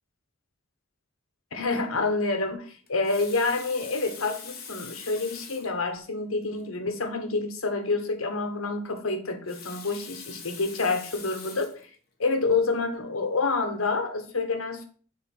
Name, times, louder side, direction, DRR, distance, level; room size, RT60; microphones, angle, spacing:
voice 1, 1.5-11.7 12.2-14.9, left 3 dB, 85° left, 6 dB, 1.3 m, -28 dB
Water tap faucet, 2.9-5.8 6.6-6.7 6.9-7.0 9.2-11.8 12.5-12.7, left 6 dB, 50° left, 1.3 m, -43 dB
6.9 x 3.4 x 5.5 m, 0.42 s
head